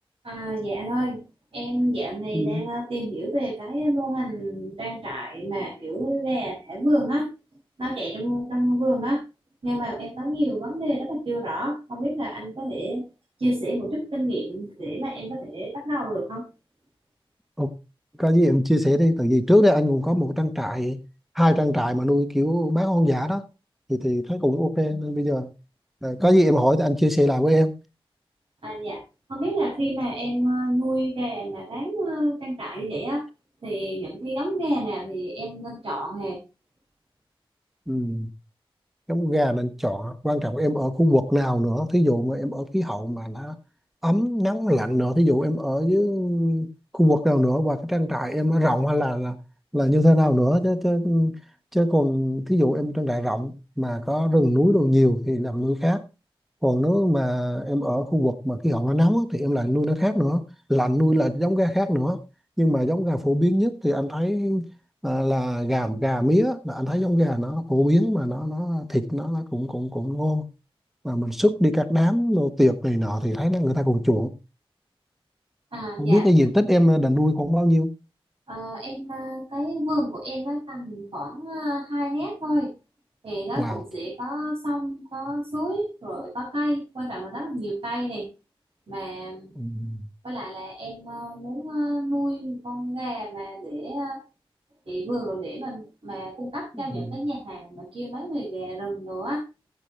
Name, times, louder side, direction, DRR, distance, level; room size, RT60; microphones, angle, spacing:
voice 1, 0.2-1.2 1.5-7.3 7.8-9.2 9.6-13.0 13.4-16.4 28.6-29.0 29.3-33.2 33.6-36.4 75.7-76.3 78.5-82.7 83.2-88.3 88.9-89.5 90.2-94.2 94.9-99.4, right 1 dB, 70° right, 6.1 m, -29 dB
voice 2, 18.2-21.0 21.3-23.4 23.9-25.5 26.0-27.7 37.9-38.3 39.1-43.5 44.0-46.7 46.9-49.4 49.7-51.3 51.7-56.0 56.6-62.2 62.6-64.7 65.0-70.4 71.0-74.3 76.0-77.9 83.6-83.8 89.6-90.1 96.9-97.2, equal, ahead, 1.2 m, -22 dB
14.5 x 7.9 x 3.3 m
wide cardioid pair, 95°, 10 cm